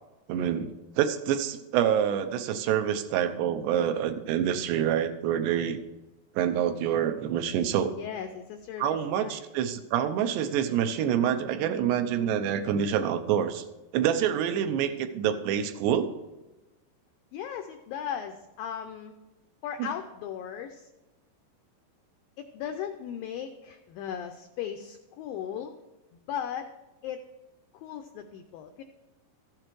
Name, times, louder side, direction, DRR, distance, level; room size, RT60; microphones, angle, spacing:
voice 1, 0.3-0.7 1.0-5.8 6.4-7.9 8.8-13.6 13.9-16.1, right 9 dB, 85° right, 7 dB, 3.0 m, -26 dB
voice 2, 7.9-9.4 17.3-19.2 19.6-20.9 22.4-25.8 26.1-26.7 27.0-27.2 27.7-28.8, left 9 dB, 85° left, 6 dB, 2.0 m, -37 dB
14.0 x 7.8 x 4.6 m, 1.1 s
omnidirectional pair, 4.8 m